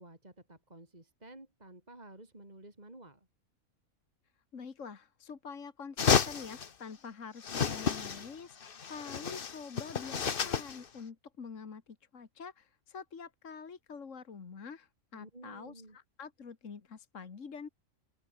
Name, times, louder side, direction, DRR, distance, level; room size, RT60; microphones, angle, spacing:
voice 1, 0.0-3.3 15.1-16.0, right 1 dB, 30° right, 3.9 m, -52 dB
voice 2, 4.5-17.7, left 5 dB, 60° left, 2.1 m, -46 dB
sound 1, 6.0-6.7 7.4-8.3 8.6-10.8, left 6 dB, 45° left, 1.2 m, -31 dB
open air
omnidirectional pair, 1.5 m